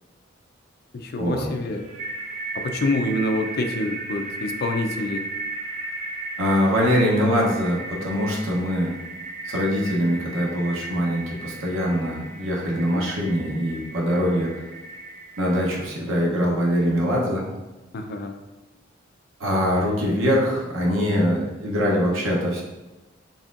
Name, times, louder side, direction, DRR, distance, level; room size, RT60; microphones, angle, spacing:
voice 1, 0.9-1.8 2.5-5.3 12.9-13.1 17.9-18.4, left 2 dB, 55° left, 5 dB, 0.4 m, -26 dB
sound 1, 1.5-15.8, right 2 dB, 40° right, 0.9 m, -36 dB
voice 2, 6.4-9.0 9.4-14.7 15.4-17.5 19.4-22.6, equal, 85° right, -3 dB, 0.8 m, -23 dB
4.1 x 3.5 x 2.5 m, 1.1 s
head